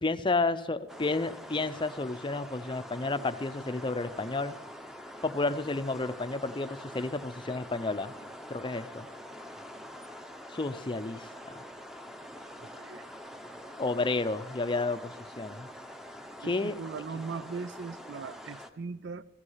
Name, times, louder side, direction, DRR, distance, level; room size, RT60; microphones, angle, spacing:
voice 1, 0.0-4.6 5.2-8.1 8.5-9.1 10.5-11.6 13.8-15.7 16.4-16.7, left 3 dB, 25° left, 0.6 m, -31 dB
sound 1, 0.9-18.7, equal, ahead, 0.9 m, -45 dB
voice 2, 12.6-13.1 16.4-19.2, right 5 dB, 65° right, 0.5 m, -39 dB
16.0 x 13.0 x 5.6 m
head